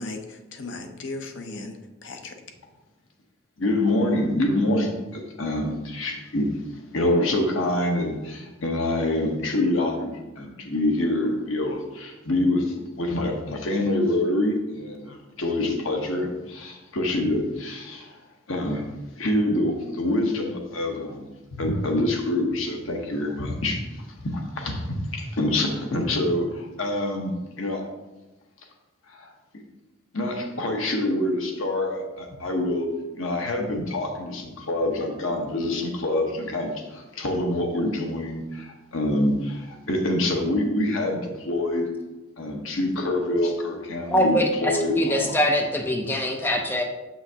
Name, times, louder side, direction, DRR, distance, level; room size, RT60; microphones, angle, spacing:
voice 1, 0.0-2.4, left 2 dB, 60° left, 5 dB, 0.7 m, -36 dB
voice 2, 3.6-6.6 6.9-18.2 18.5-18.9 19.2-21.3 21.6-27.9 29.1-29.3 30.1-32.9 33.1-41.9 42.4-45.4 46.1-46.2, left 1 dB, 85° left, 2 dB, 1.1 m, -26 dB
voice 3, 44.1-46.8, equal, 10° left, 2 dB, 0.5 m, -23 dB
7.0 x 5.8 x 2.8 m, 1.1 s
head